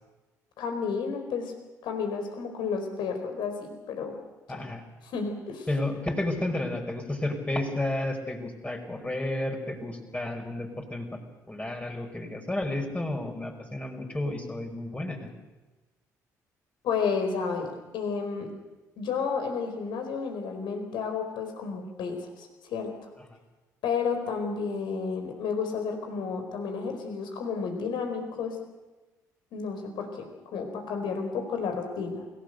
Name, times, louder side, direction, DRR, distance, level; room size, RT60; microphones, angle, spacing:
voice 1, 0.6-1.5 1.8-4.2 4.5-4.6 5.0-5.7 16.8-18.5 19.0-22.9 23.8-28.6 29.5-32.3, left 5 dB, 60° left, 5 dB, 4.5 m, -31 dB
voice 2, 4.5-4.8 5.7-11.1 11.5-15.3, left 1 dB, 15° left, 3 dB, 5.3 m, -31 dB
28.0 x 17.5 x 6.7 m, 1.2 s
figure-of-eight pair, 45°, 9 cm